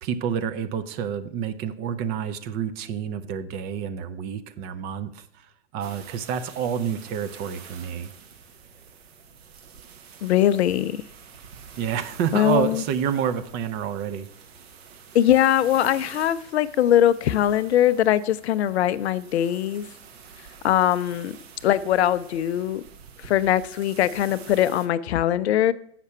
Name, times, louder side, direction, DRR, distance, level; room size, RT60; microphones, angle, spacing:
voice 1, 0.0-5.5 5.7-8.1 11.7-14.3, right 8 dB, 25° right, 10 dB, 0.5 m, -28 dB
sound 1, 5.8-24.9, right 6 dB, 60° right, 1.2 m, -47 dB
voice 2, 10.2-11.0 12.3-12.8 15.1-19.9 20.6-21.3 21.6-22.8 23.2-25.7, left 11 dB, 65° left, 15 dB, 0.5 m, -21 dB
7.2 x 5.9 x 5.5 m, 0.67 s
figure-of-eight pair, 105°, 36 cm